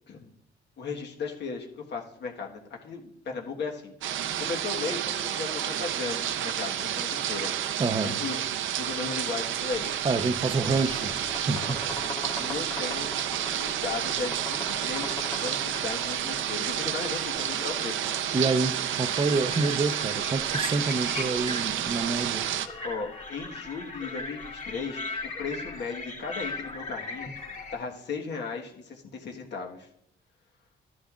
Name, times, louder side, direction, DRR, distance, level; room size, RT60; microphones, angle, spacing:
voice 1, 0.8-3.9 4.4-7.5 8.0-8.4 8.8-9.9 12.4-13.1 13.6-15.1 15.4-18.1 22.8-27.3 27.7-29.9, left 4 dB, 60° left, 1.4 m, -36 dB
sound 1, 4.0-22.7, right 10 dB, 75° right, 0.7 m, -30 dB
voice 2, 7.8-8.2 10.0-11.2 11.5-11.8 18.3-22.4, right 3 dB, 25° right, 0.7 m, -27 dB
sound 2, 9.6-27.8, left 2 dB, 35° left, 2.6 m, -41 dB
sound 3, 10.6-16.3, left 2 dB, 20° left, 1.4 m, -40 dB
13.0 x 10.5 x 2.4 m
cardioid pair, 90°, 20 cm